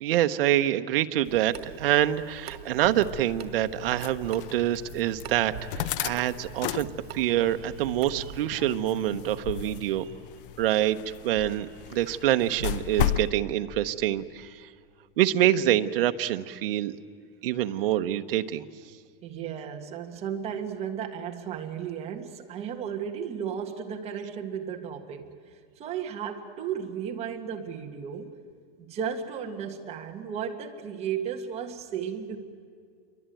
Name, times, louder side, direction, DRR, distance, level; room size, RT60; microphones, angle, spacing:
voice 1, 0.0-6.9 7.1-10.0 10.6-14.5 15.2-18.7, right 13 dB, 65° right, 9 dB, 1.1 m, -26 dB
Water tap faucet / Sink (filling or washing) / Drip, 1.2-8.4, right 9 dB, 85° right, 1.8 m, -44 dB
sound 1, 2.8-13.3, left 11 dB, 60° left, 0.8 m, -35 dB
voice 2, 19.2-25.3 25.8-28.3 28.8-32.4, right 8 dB, 20° right, 3 dB, 1.6 m, -34 dB
28.0 x 23.0 x 9.2 m, 2.1 s
supercardioid pair, 170°, 31 cm